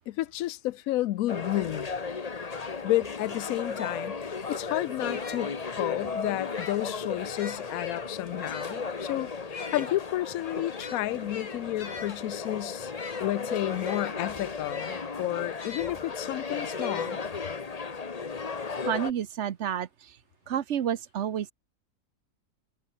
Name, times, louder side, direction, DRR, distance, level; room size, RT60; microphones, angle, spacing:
voice 1, 0.1-1.9 2.8-12.9 13.2-17.2, left 15 dB, 70° left, 1.0 m, -31 dB
sound 1, 1.3-19.1, left 4 dB, 30° left, 1.0 m, -35 dB
sound 2, 2.0-2.1 2.4-5.7 6.4-16.0 16.5-17.6, left 5 dB, 50° left, 2.4 m, -44 dB
voice 2, 18.9-20.2 20.5-21.5, right 9 dB, 55° right, 1.0 m, -30 dB
omnidirectional pair, 1.7 m